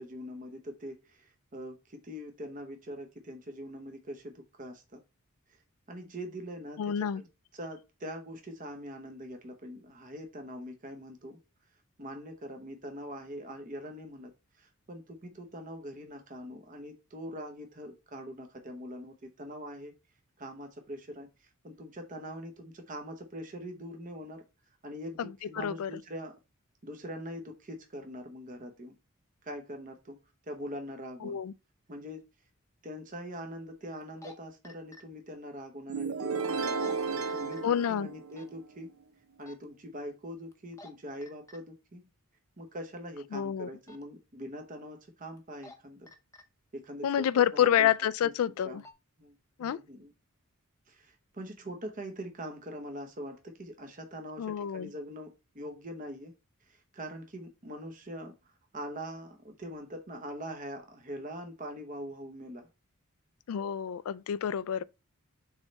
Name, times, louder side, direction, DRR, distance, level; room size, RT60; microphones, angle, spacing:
voice 1, 0.0-5.0 5.5-5.6 5.9-7.3 7.5-11.4 12.0-14.3 14.6-20.0 20.4-24.4 24.8-26.3 26.8-29.0 29.4-30.2 30.5-31.4 31.9-32.2 32.8-38.9 39.4-42.1 42.6-46.1 46.7-47.9 48.2-48.3 48.6-48.8 49.2-50.1 50.9-56.3 56.6-62.7, equal, 40° right, 0.9 m, -43 dB
voice 2, 6.8-7.2 25.2-25.3 25.6-25.9 31.2-31.5 37.6-38.1 43.3-43.7 47.0-48.8 49.6-49.8 54.4-54.9 63.5-64.8, left 9 dB, 80° left, 0.3 m, -28 dB
sound 1, 32.0-32.1 34.0-34.3 34.6-35.0 36.6-36.9 37.2-37.6 38.3-38.5 39.4-39.6 40.5-40.9 41.2-41.6 43.8-44.0 45.4-45.8 46.1-46.4 47.1-47.3 47.9-48.1 48.6-48.9, left 2 dB, 15° left, 0.8 m, -50 dB
sound 2, 35.9-38.7, right 4 dB, 75° right, 0.6 m, -33 dB
7.2 x 3.3 x 4.0 m
head